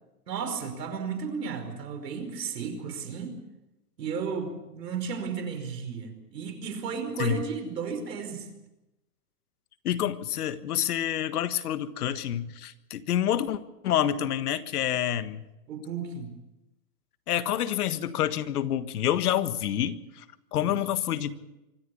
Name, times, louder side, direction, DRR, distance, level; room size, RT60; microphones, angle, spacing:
voice 1, 0.3-3.4 4.0-8.5 15.7-16.3 20.6-20.7, right 6 dB, 80° right, 7 dB, 5.2 m, -34 dB
voice 2, 9.8-15.4 17.3-20.2 20.5-21.4, left 11 dB, 65° left, 12 dB, 1.6 m, -28 dB
25.0 x 14.0 x 8.4 m, 0.96 s
hypercardioid pair, 155°, 48 cm